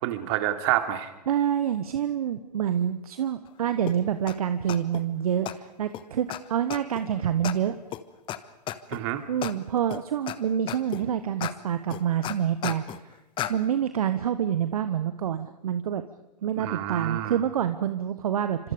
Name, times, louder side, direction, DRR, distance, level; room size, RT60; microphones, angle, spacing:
voice 1, 0.0-1.1 8.9-9.2 16.6-17.4, right 13 dB, 40° right, 7 dB, 3.0 m, -28 dB
voice 2, 1.3-7.8 9.0-13.1 13.5-16.0 16.4-18.7, right 9 dB, 60° right, 11 dB, 1.4 m, -27 dB
sound 1, 3.9-4.0 4.3-4.4 4.7-5.0 5.5-5.6 5.9-6.0 6.3-6.4 6.7-7.0 7.4-7.5 7.9-8.0 8.3-8.4 8.7-9.0 9.4-9.5 9.9-10.4 10.7-11.0 11.4-11.5 11.9-13.0 13.4-13.5, left 12 dB, 25° left, 1.3 m, -33 dB
29.0 x 26.5 x 5.2 m, 0.96 s
figure-of-eight pair, 110°, 21 cm